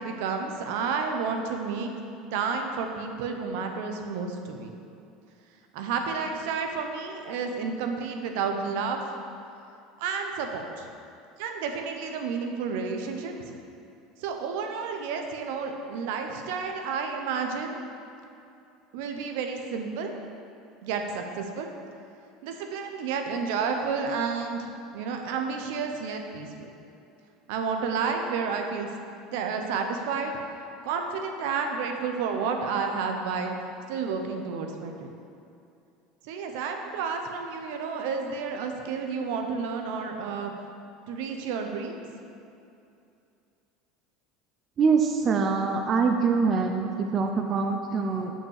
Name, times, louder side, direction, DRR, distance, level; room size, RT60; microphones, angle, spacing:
voice 1, 0.0-1.9 2.3-4.7 5.7-9.0 10.0-10.9 11.4-13.5 14.2-17.8 18.9-20.1 20.8-21.7 22.4-24.7 24.9-26.7 27.5-28.9 29.3-30.4 30.8-33.6 33.9-35.2 36.2-40.5 41.1-42.0, right 5 dB, 75° right, 4 dB, 0.8 m, -31 dB
voice 2, 44.8-48.3, right 5 dB, 35° right, 4 dB, 0.5 m, -24 dB
5.8 x 5.5 x 6.5 m, 2.7 s
supercardioid pair, 130°, 0 cm